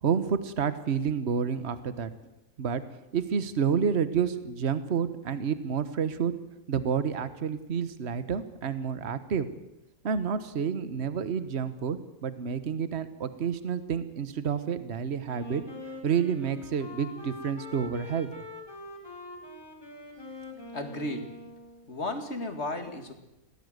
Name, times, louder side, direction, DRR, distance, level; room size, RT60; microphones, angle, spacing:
voice 1, 0.0-2.1 2.6-2.8 3.1-6.3 6.7-9.5 10.0-15.6 16.0-18.3, right 7 dB, 50° right, 12 dB, 1.4 m, -29 dB
Wind instrument woodwind instrument, 15.3-22.0, left 1 dB, 15° left, 4.0 m, -44 dB
voice 2, 20.7-21.3 21.9-23.1, left 2 dB, 50° left, 7 dB, 2.5 m, -34 dB
22.0 x 17.5 x 8.0 m, 0.92 s
omnidirectional pair, 1.5 m